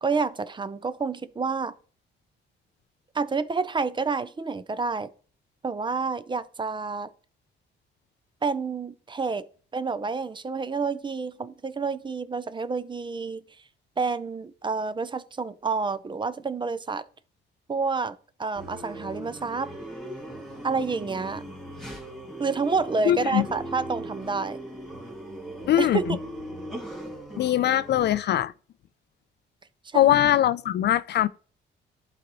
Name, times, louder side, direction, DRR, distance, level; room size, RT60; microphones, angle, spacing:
voice 1, 0.0-1.7 3.1-5.1 5.6-7.1 8.4-9.4 9.7-13.4 14.0-17.1 17.7-19.7 20.6-21.4 22.4-24.6 25.8-26.2 29.8-30.2, right 4 dB, 25° right, 0.5 m, -29 dB
sound 1, 18.5-28.2, right 1 dB, ahead, 2.1 m, -39 dB
voice 2, 23.1-23.4 25.7-26.0 27.4-28.5 29.9-31.3, left 12 dB, 60° left, 0.4 m, -21 dB
11.0 x 4.1 x 3.0 m
cardioid pair, 90°, 20 cm